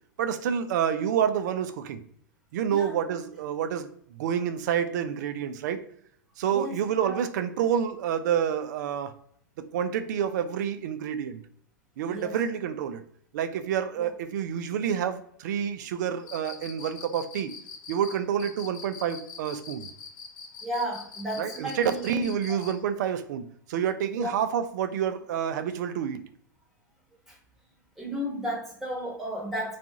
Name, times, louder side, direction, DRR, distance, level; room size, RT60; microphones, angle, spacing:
voice 1, 0.2-2.0 2.5-5.8 6.4-9.1 9.6-11.4 12.0-13.0 13.3-17.5 17.9-19.9 21.4-26.2, right 8 dB, 55° right, 10 dB, 0.3 m, -28 dB
voice 2, 6.4-7.2 12.1-12.4 13.9-14.1 20.6-22.7 24.1-24.3 27.3-27.4 28.0-29.8, equal, ahead, -5 dB, 1.2 m, -34 dB
Cricket, 16.2-22.8, left 5 dB, 70° left, 0.6 m, -43 dB
2.4 x 2.3 x 2.7 m, 0.65 s
hypercardioid pair, 105°, 11 cm